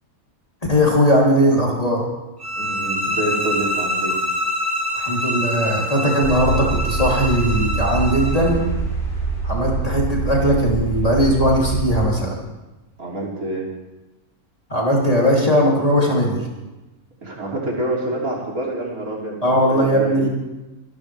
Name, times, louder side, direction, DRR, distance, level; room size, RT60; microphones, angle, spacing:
voice 1, 0.7-2.0 5.0-8.6 9.4-12.4 14.7-16.4 19.4-20.3, equal, 25° left, -3 dB, 3.5 m, -18 dB
sound 1, 2.4-8.5, left 1 dB, 35° right, 3.1 m, -25 dB
voice 2, 2.6-4.1 13.0-13.7 17.2-20.3, right 2 dB, 70° right, -3 dB, 3.9 m, -27 dB
sound 2, 6.2-12.1, right 4 dB, 45° left, 6.3 m, -25 dB
25.5 x 12.5 x 3.5 m, 1.1 s
omnidirectional pair, 1.6 m